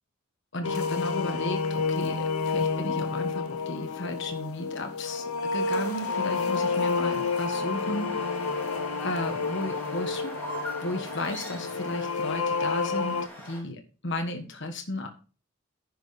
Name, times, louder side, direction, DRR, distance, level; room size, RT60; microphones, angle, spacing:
voice 1, 0.5-5.2 5.5-8.7 9.0-10.3 10.8-13.2 13.4-15.1, left 1 dB, 55° left, 5 dB, 1.4 m, -34 dB
sound 1, 0.6-13.3, left 4 dB, 90° left, 0.8 m, -30 dB
sound 2, 5.6-13.6, equal, 10° left, 3.1 m, -41 dB
10.0 x 6.3 x 4.1 m, 0.36 s
head